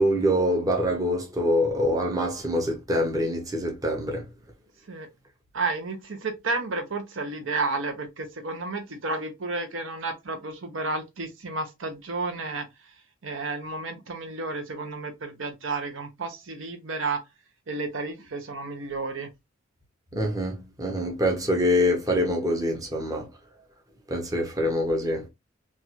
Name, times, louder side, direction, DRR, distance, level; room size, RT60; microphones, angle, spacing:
voice 1, 0.0-4.2 20.1-23.3 24.1-25.3, equal, 15° right, 0.7 m, -25 dB
voice 2, 5.5-12.7 13.2-17.2 17.7-19.3, right 3 dB, 70° right, 0.8 m, -31 dB
3.1 x 2.4 x 2.8 m
head